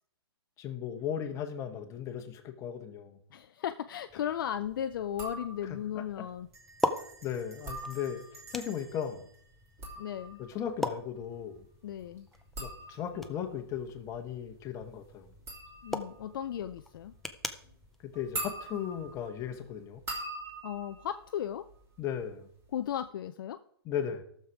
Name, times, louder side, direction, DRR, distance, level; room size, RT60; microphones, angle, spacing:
voice 1, 0.6-3.2 5.6-6.2 7.2-9.3 10.4-11.6 12.6-15.3 18.0-20.0 22.0-22.5 23.8-24.2, left 8 dB, 20° left, 5 dB, 1.3 m, -37 dB
voice 2, 3.3-6.5 10.0-10.4 11.8-12.3 15.8-17.1 20.6-21.6 22.7-23.6, left 10 dB, 55° left, 9 dB, 0.5 m, -36 dB
sound 1, 4.1-19.3, left 1 dB, ahead, 0.4 m, -42 dB
Bell, 4.7-4.8 5.0-5.1 5.4-5.7 6.5-10.6, right 3 dB, 70° right, 4.1 m, -55 dB
sound 2, 5.1-5.9 7.5-8.5 9.5-22.2 22.5-23.1, right 1 dB, 20° right, 2.9 m, -44 dB
13.5 x 6.8 x 4.8 m, 0.65 s
hypercardioid pair, 135°, 14 cm